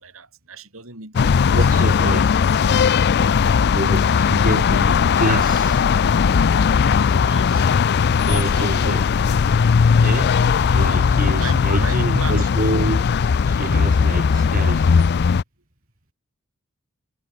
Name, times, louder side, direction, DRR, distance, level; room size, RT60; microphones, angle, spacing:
voice 1, 0.0-1.7 2.0-2.7 7.1-9.0 11.1-12.5, right 4 dB, 80° right, 6.2 m, -37 dB
sound 1, 1.2-15.4, left 6 dB, 50° left, 0.4 m, -18 dB
voice 2, 1.5-2.3 3.7-5.8 8.2-9.0 10.0-10.4 10.7-14.9, right 1 dB, 40° right, 5.6 m, -26 dB
head